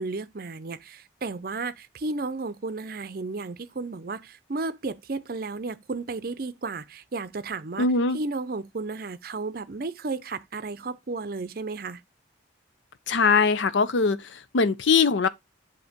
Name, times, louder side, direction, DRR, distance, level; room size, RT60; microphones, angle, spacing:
voice 1, 0.0-7.9 8.1-12.0, right 3 dB, 50° right, 0.6 m, -33 dB
voice 2, 7.8-8.2 13.1-15.3, left 4 dB, 80° left, 0.6 m, -22 dB
8.0 x 2.8 x 4.9 m
head